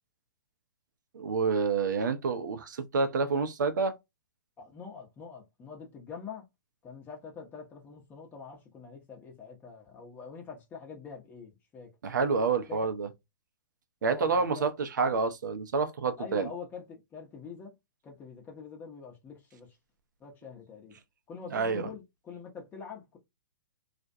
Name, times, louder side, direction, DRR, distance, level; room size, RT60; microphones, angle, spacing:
voice 1, 1.1-4.0 12.0-13.1 14.0-16.5 21.5-21.9, right 4 dB, 70° right, 0.6 m, -28 dB
voice 2, 4.6-6.5 6.8-11.9 12.7-12.8 14.0-14.4 16.2-17.7 18.0-19.8 20.2-21.0 21.3-23.2, left 5 dB, 20° left, 0.7 m, -45 dB
2.4 x 2.1 x 2.6 m
hypercardioid pair, 120°, 10 cm